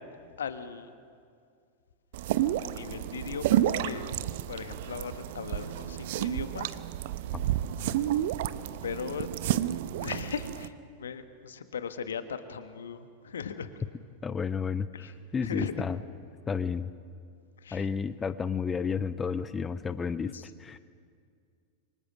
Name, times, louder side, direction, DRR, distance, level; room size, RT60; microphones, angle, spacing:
voice 1, 0.4-0.9 2.6-4.2 4.5-6.8 8.8-9.3 10.0-13.7 14.9-15.1 15.4-15.7 17.6-17.9 20.2-20.4, left 6 dB, 65° left, 10 dB, 1.5 m, -38 dB
sound 1, 2.1-10.7, right 12 dB, 55° right, 0.8 m, -30 dB
voice 2, 14.2-14.9 15.3-16.0 16.5-16.9 17.7-20.3 20.6-20.8, left 6 dB, 20° left, 14 dB, 0.7 m, -31 dB
28.5 x 25.0 x 6.4 m, 2.2 s
figure-of-eight pair, 90°, 0 cm